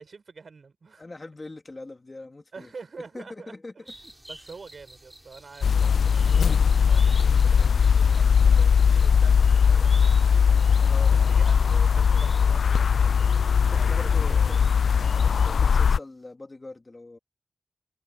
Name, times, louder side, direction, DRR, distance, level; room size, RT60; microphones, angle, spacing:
voice 1, 0.0-1.0 2.5-3.8 4.3-10.8 11.1-13.3 13.7-14.7 15.1-15.2, right 4 dB, 50° right, 6.4 m, -46 dB
voice 2, 1.0-2.7 3.0-3.9 10.8-11.1 13.6-14.6 15.1-17.2, left 2 dB, 25° left, 3.1 m, -42 dB
sound 1, 3.8-15.5 15.8-15.9, right 1 dB, 10° right, 6.4 m, -50 dB
sound 2, 5.6-16.0, left 6 dB, 70° left, 0.5 m, -20 dB
wide cardioid pair, 175°, 0 cm